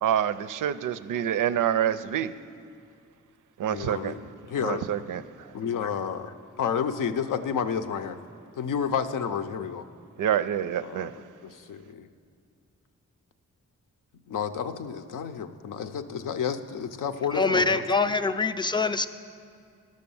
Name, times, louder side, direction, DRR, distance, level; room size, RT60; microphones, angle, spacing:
voice 1, 0.0-2.4 3.6-4.1 4.6-5.5 10.2-11.1, right 10 dB, 80° right, 0.5 m, -27 dB
voice 2, 3.7-4.2 4.5-4.8 5.5-8.2 8.6-9.9 10.8-11.1 11.4-12.1 14.3-17.8, left 7 dB, 80° left, 0.6 m, -30 dB
voice 3, 17.3-19.1, left 3 dB, 15° left, 0.4 m, -24 dB
12.0 x 6.5 x 7.0 m
cardioid pair, 75°, 31 cm